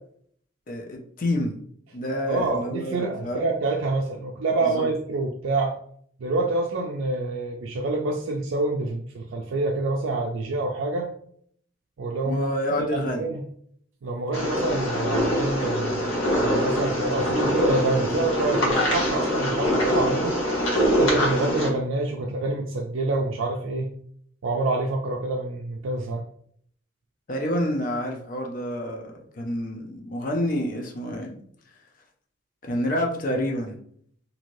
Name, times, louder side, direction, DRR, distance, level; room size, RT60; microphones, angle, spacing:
voice 1, 0.7-1.6 1.9-3.5 4.7-4.9 12.2-13.3 27.3-31.4 32.6-33.8, left 1 dB, 45° left, 2 dB, 0.5 m, -28 dB
voice 2, 2.3-5.8 6.2-11.1 12.0-12.5 12.8-13.4 14.0-20.4 21.0-23.9 24.4-26.2, right 2 dB, 90° right, 1 dB, 0.4 m, -27 dB
sound 1, 14.3-21.7, equal, 90° left, 1.1 m, -24 dB
3.1 x 2.7 x 2.6 m, 0.63 s
head